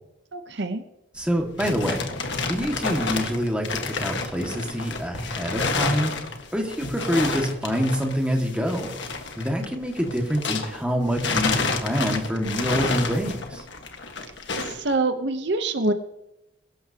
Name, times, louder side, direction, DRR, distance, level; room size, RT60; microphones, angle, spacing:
voice 1, 0.3-0.8 14.6-15.9, right 2 dB, 60° right, 8 dB, 0.9 m, -25 dB
voice 2, 1.1-2.1 2.5-6.1 6.5-8.9 9.4-13.6, equal, 5° right, 1 dB, 2.0 m, -26 dB
sound 1, 1.2-10.8 11.1-14.8, left 3 dB, 65° left, 1.6 m, -29 dB
23.0 x 12.5 x 2.9 m, 0.94 s
head